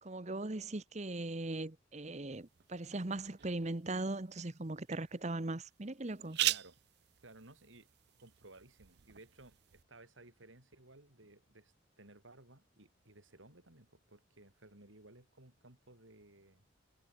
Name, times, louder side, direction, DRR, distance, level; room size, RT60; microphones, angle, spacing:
voice 1, 0.0-6.4, right 2 dB, 35° right, 1.0 m, -39 dB
sound 1, 2.3-9.8, right 16 dB, 55° right, 0.4 m, -42 dB
voice 2, 6.4-6.8 7.2-7.9 8.2-16.6, right 2 dB, 85° right, 4.6 m, -58 dB
head